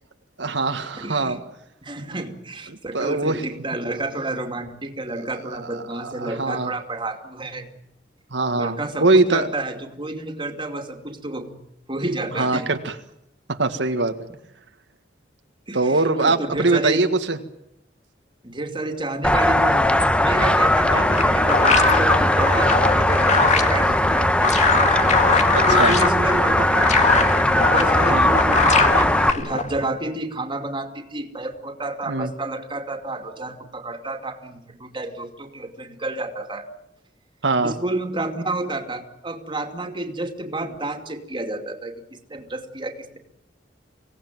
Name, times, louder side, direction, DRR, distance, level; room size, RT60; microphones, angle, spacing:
voice 1, 0.4-1.4 2.7-3.4 5.2-5.3 5.6-6.7 8.3-9.5 12.4-12.9 13.5-14.2 15.7-17.4 20.9-21.1 25.5-25.9 28.1-28.3 32.1-32.3 37.4-37.7, right 3 dB, 90° right, 6 dB, 1.8 m, -22 dB
voice 2, 1.0-1.4 1.8-7.7 8.6-11.6 11.9-12.7 15.7-17.1 18.4-24.9 25.3-27.0 27.4-36.7 37.6-43.2, right 2 dB, 30° right, 5 dB, 2.7 m, -30 dB
sound 1, 19.2-29.3, left 1 dB, 5° left, 1.0 m, -19 dB
sound 2, 20.6-29.9, left 4 dB, 40° left, 2.0 m, -22 dB
25.0 x 18.0 x 9.2 m, 0.78 s
head